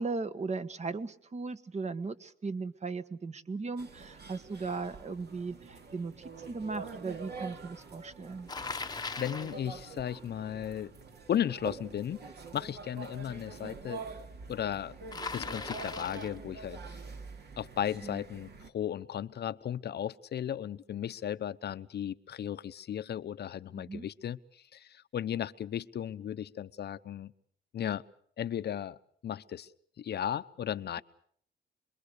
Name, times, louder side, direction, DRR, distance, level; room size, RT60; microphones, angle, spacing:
voice 1, 0.0-6.1 6.4-8.5 18.0-18.2 23.7-24.1, right 4 dB, 35° right, 11 dB, 1.4 m, -37 dB
sound 1, 3.8-18.7, right 4 dB, 55° right, 2.6 m, -46 dB
Bicycle, 8.5-9.6 15.1-16.4, left 4 dB, 20° left, 1.1 m, -39 dB
voice 2, 8.9-10.9 11.3-12.2 12.5-14.0 14.5-14.9 15.3-17.0 17.6-27.3 27.7-28.0 28.4-29.0 29.2-29.7 30.0-31.0, left 10 dB, 55° left, 13 dB, 0.9 m, -35 dB
26.5 x 22.0 x 6.7 m, 0.62 s
cardioid pair, 90°, 20 cm